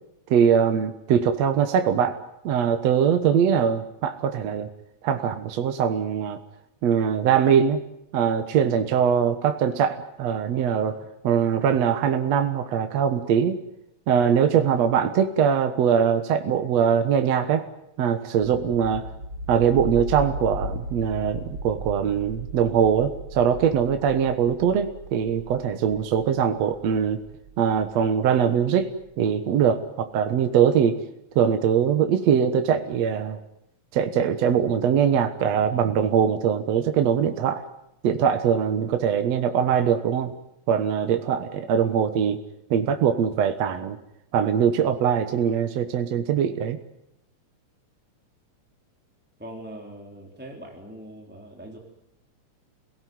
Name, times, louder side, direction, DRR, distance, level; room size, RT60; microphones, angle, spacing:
voice 1, 0.3-2.2 2.4-4.7 5.0-6.4 6.8-7.8 8.1-11.0 11.2-13.6 14.1-17.6 18.0-19.0 19.5-27.2 27.6-28.9 29.2-31.0 31.4-33.4 33.9-37.7 38.0-40.3 40.7-42.4 42.7-44.0 44.3-46.8, right 8 dB, 65° right, 8 dB, 2.4 m, -22 dB
sound 1, 18.4-29.1, right 1 dB, 50° right, 4.4 m, -37 dB
voice 2, 49.4-51.8, right 1 dB, 5° right, 1 dB, 3.6 m, -41 dB
28.0 x 17.5 x 9.5 m, 0.82 s
omnidirectional pair, 3.3 m